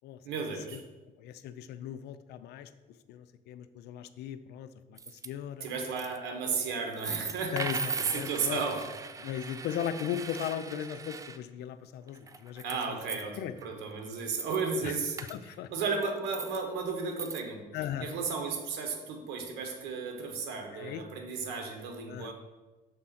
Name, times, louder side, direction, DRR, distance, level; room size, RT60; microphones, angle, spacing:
voice 1, 0.2-0.8 5.6-7.5 8.1-8.8 12.6-15.2 15.7-17.6 18.0-22.3, right 5 dB, 90° right, 3 dB, 1.2 m, -34 dB
voice 2, 1.2-2.7 3.1-5.7 6.7-6.8 7.5-8.6 9.2-13.5 14.8-15.7 17.7-18.1 20.7-21.0 22.0-22.3, left 10 dB, 75° left, 12 dB, 0.5 m, -38 dB
sound 1, 5.0-5.3 5.7-6.2 6.9-11.4 12.1-13.2 13.6-13.7 14.0-14.6 15.2-15.4 15.9-16.6 17.1-17.4, right 5 dB, 20° right, 0.3 m, -39 dB
6.5 x 3.8 x 5.7 m, 1.2 s
cardioid pair, 110°, 17 cm